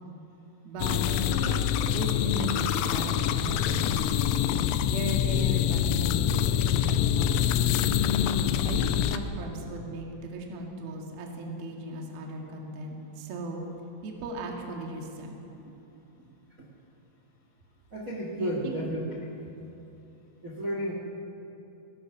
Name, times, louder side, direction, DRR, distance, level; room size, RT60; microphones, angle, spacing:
voice 1, 0.6-1.6 1.9-4.3 4.9-7.8 8.6-13.6 14.0-15.3 18.3-19.1, right 2 dB, 55° right, 0 dB, 3.5 m, -37 dB
sound 1, 0.8-9.2, left 9 dB, 85° left, 3.2 m, -25 dB
voice 2, 17.9-19.3 20.4-20.9, equal, 85° right, -1 dB, 0.7 m, -33 dB
23.5 x 18.5 x 6.0 m, 3.0 s
omnidirectional pair, 5.7 m